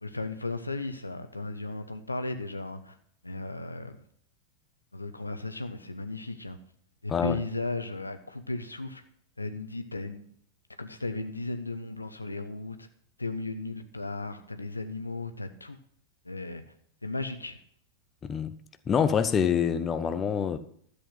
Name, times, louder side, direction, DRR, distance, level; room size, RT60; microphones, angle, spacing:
voice 1, 0.0-3.0 3.2-4.0 4.9-6.6 7.0-9.0 9.4-10.2 10.8-12.9 13.2-15.8 16.2-16.6 17.0-17.6, left 2 dB, 80° left, 1.0 m, -35 dB
voice 2, 7.1-7.4 18.2-18.5 18.9-20.6, left 7 dB, 25° left, 0.7 m, -26 dB
13.0 x 8.4 x 5.8 m
figure-of-eight pair, 90°, 0 cm